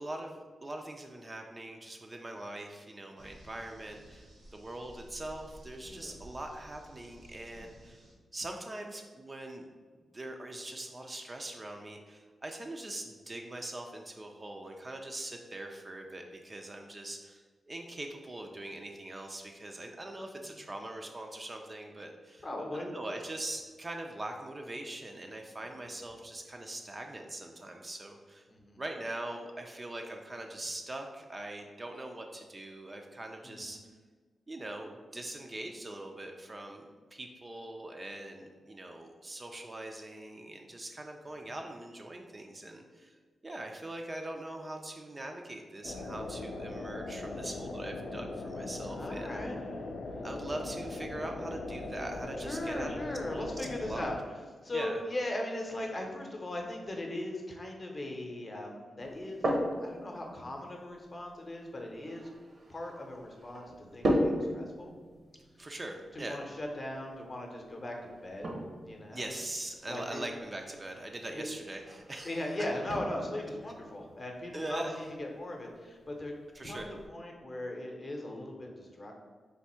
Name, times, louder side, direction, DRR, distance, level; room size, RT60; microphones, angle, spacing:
voice 1, 0.0-8.0 8.3-9.7 10.1-22.5 22.7-28.5 28.8-33.8 34.5-49.4 50.2-53.0 53.3-54.1 54.7-55.0 65.6-66.4 69.1-72.4 74.5-75.0 76.5-76.9, right 1 dB, 25° right, 3 dB, 0.4 m, -42 dB
sound 1, 3.2-8.1, equal, 85° right, 1.0 m, -54 dB
voice 2, 5.8-6.2 22.4-22.9 28.5-28.8 33.4-33.8 48.8-49.9 52.4-54.2 54.6-59.5 59.8-62.3 62.7-64.9 66.1-68.0 68.2-68.5 68.8-69.3 69.9-70.2 71.3-71.5 72.2-76.3 76.6-79.2, left 1 dB, 35° left, 1 dB, 0.7 m, -39 dB
sound 2, 45.8-54.1, left 2 dB, 75° left, 0.5 m, -40 dB
sound 3, 59.0-77.1, equal, 55° right, 0.7 m, -38 dB
3.4 x 2.6 x 4.3 m, 1.5 s
cardioid pair, 95°, 0 cm